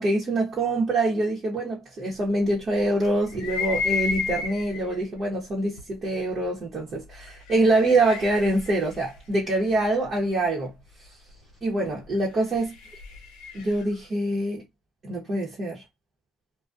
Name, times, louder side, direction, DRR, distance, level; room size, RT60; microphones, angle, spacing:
voice 1, 0.0-10.7 11.6-12.7 13.5-14.6 15.0-15.8, right 2 dB, 40° right, 0.9 m, -25 dB
sound 1, 3.3-5.0 5.8-5.9 7.2-10.1 12.2-13.9, left 5 dB, 90° left, 0.8 m, -32 dB
2.5 x 2.2 x 2.3 m
cardioid pair, 110°, 0 cm